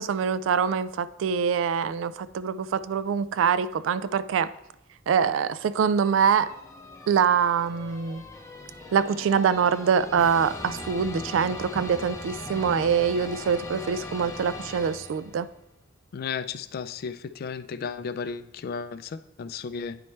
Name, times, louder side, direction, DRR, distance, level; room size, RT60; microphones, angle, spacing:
voice 1, 0.0-4.5 5.1-6.5 7.1-8.2 8.9-15.5, right 7 dB, 80° right, 16 dB, 0.3 m, -24 dB
sound 1, 6.0-15.5, left 2 dB, 15° left, 0.6 m, -40 dB
voice 2, 16.1-20.0, left 6 dB, 50° left, 12 dB, 0.3 m, -34 dB
9.3 x 4.4 x 3.2 m, 0.84 s
head